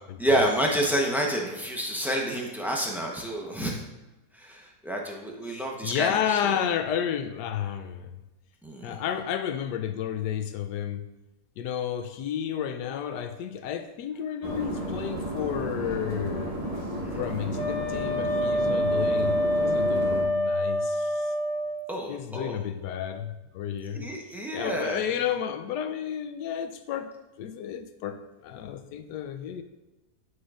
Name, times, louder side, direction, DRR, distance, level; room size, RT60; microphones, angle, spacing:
voice 1, 0.2-3.8 4.3-6.6 8.6-9.0 17.0-17.2 21.9-22.6 23.9-25.0, equal, 5° right, -1 dB, 0.4 m, -29 dB
voice 2, 5.5-8.2 8.8-11.1 11.6-16.6 17.2-21.3 22.1-24.1 24.5-29.6, left 9 dB, 85° left, 10 dB, 1.2 m, -31 dB
sound 1, 14.4-20.2, right 1 dB, 25° right, 1.0 m, -33 dB
Wind instrument woodwind instrument, 17.5-21.8, left 1 dB, 40° left, 0.6 m, -26 dB
9.4 x 6.3 x 2.4 m, 1.0 s
omnidirectional pair, 1.8 m